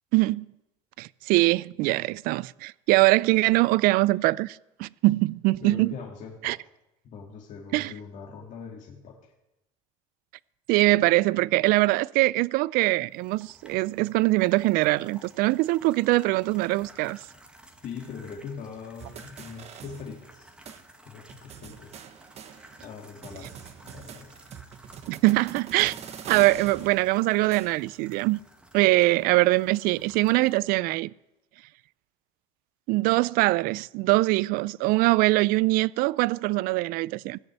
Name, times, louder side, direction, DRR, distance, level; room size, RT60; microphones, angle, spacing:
voice 1, 0.1-0.5 1.0-5.9 6.4-6.6 7.7-7.9 10.7-17.2 25.1-25.9 26.3-28.4 28.7-31.1 32.9-37.4, right 20 dB, 60° right, 0.4 m, -23 dB
voice 2, 5.6-6.6 7.0-9.3 17.8-20.5 21.1-22.0 22.8-24.3, left 6 dB, 45° left, 2.1 m, -41 dB
sound 1, 13.1-30.6, right 1 dB, 5° right, 1.7 m, -53 dB
sound 2, 19.0-20.4 20.7-20.8 21.3-22.9 23.2-28.0, right 8 dB, 40° right, 1.2 m, -44 dB
16.0 x 6.6 x 8.1 m
supercardioid pair, 105°, 17 cm